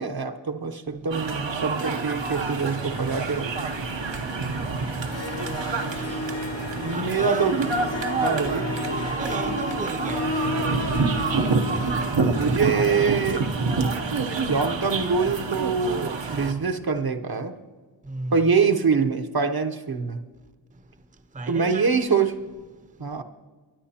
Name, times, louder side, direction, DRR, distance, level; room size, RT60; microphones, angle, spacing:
voice 1, 0.0-3.5 6.8-7.5 8.2-8.7 12.3-13.5 14.5-17.5 18.3-20.2 21.5-22.3 23.0-23.2, right 5 dB, 55° right, 0.8 m, -24 dB
sound 1, 1.1-16.5, right 4 dB, 85° right, 0.9 m, -27 dB
sound 2, 2.2-17.0, left 5 dB, 75° left, 0.8 m, -46 dB
Harp, 4.8-4.9 5.1-14.6, left 4 dB, 35° left, 0.5 m, -35 dB
voice 2, 6.9-7.5 7.8-8.0 9.0-10.9 18.1-18.3 21.3-22.5, right 3 dB, 20° right, 0.6 m, -35 dB
23.0 x 9.3 x 2.8 m
wide cardioid pair, 55°, 44 cm